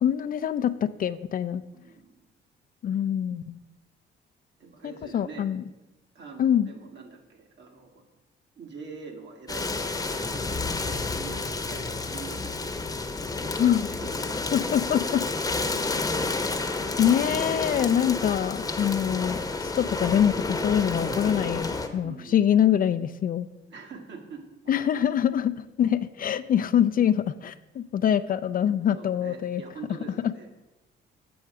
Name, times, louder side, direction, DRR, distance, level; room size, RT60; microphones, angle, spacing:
voice 1, 0.0-1.6 2.8-3.6 4.8-5.6 6.4-6.7 13.6-13.9 14.5-15.2 17.0-23.5 24.7-29.6, left 9 dB, 45° left, 12 dB, 0.4 m, -24 dB
voice 2, 1.7-2.3 4.6-5.5 6.1-8.0 8.6-14.4 22.0-22.5 23.7-25.0 28.9-30.7, right 5 dB, 65° right, 2 dB, 1.6 m, -45 dB
sound 1, 9.5-21.9, left 3 dB, 20° left, 0.9 m, -30 dB
7.8 x 6.3 x 4.7 m, 1.0 s
cardioid pair, 90°, 20 cm